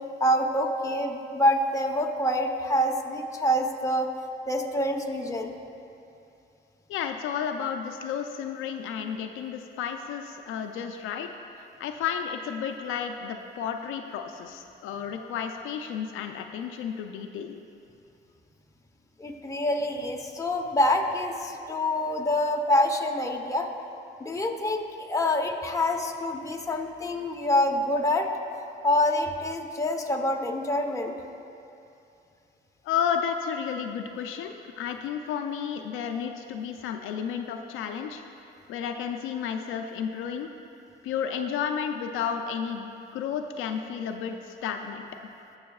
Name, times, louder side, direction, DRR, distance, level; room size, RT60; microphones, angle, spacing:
voice 1, 0.2-4.1 4.5-5.5 19.2-23.7 24.2-28.3 28.8-31.1, left 1 dB, 15° left, 2 dB, 0.9 m, -26 dB
voice 2, 6.9-11.3 11.5-17.6 32.8-38.2 38.7-40.5 41.0-45.1, left 7 dB, 90° left, 5 dB, 0.5 m, -32 dB
17.5 x 6.2 x 2.4 m, 2.7 s
cardioid pair, 90°, 20 cm